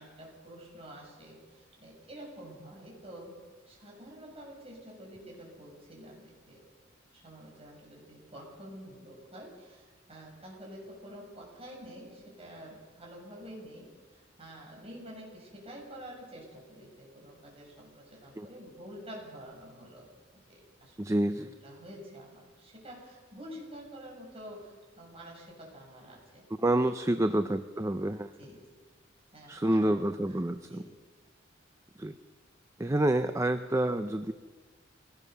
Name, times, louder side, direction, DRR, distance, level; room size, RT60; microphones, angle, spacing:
voice 1, 0.0-3.3 3.7-6.6 7.1-20.1 20.5-26.4 27.0-27.3 28.4-28.6 29.3-30.9, equal, 30° right, -2 dB, 7.1 m, -48 dB
voice 2, 21.0-21.5 26.6-28.3 29.5-30.8 32.0-32.2 32.8-34.3, right 1 dB, 15° right, 10 dB, 0.6 m, -28 dB
23.5 x 18.0 x 6.8 m, 1.3 s
head